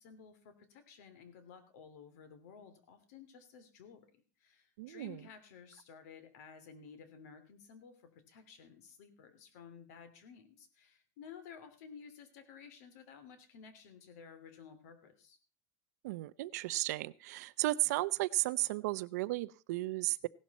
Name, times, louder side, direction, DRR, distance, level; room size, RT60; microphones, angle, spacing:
voice 1, 0.0-15.4, left 6 dB, 70° left, 11 dB, 2.9 m, -54 dB
voice 2, 4.8-5.2 16.0-20.3, right 18 dB, 70° right, 17 dB, 0.7 m, -34 dB
17.0 x 12.0 x 4.2 m, 0.33 s
supercardioid pair, 175°, 9 cm